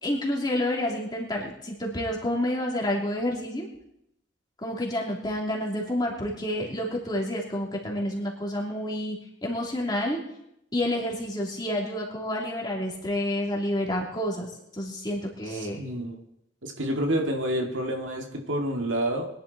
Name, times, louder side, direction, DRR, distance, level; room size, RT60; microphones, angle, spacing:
voice 1, 0.0-3.7 4.6-10.2 10.7-15.8, left 1 dB, 20° left, -1 dB, 2.9 m, -29 dB
voice 2, 15.5-16.2 16.6-19.3, right 1 dB, 90° right, 2 dB, 2.1 m, -28 dB
22.5 x 11.0 x 4.2 m, 0.79 s
head